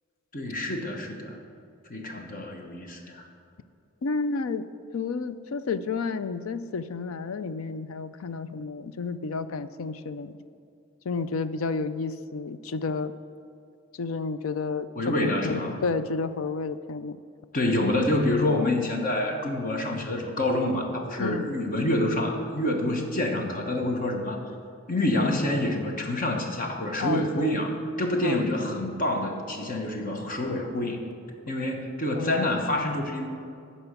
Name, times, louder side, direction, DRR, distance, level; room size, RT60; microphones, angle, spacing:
voice 1, 0.3-1.4 1.9-3.2 14.9-15.8 17.5-24.4 24.9-31.0 31.5-33.3, left 1 dB, 40° left, 2 dB, 1.2 m, -27 dB
voice 2, 4.0-4.7 4.9-10.3 11.0-13.1 13.9-17.2 21.2-21.4 27.0-27.6 28.2-28.4 32.2-32.5, left 4 dB, 80° left, 13 dB, 0.5 m, -31 dB
12.5 x 4.4 x 8.2 m, 2.4 s
head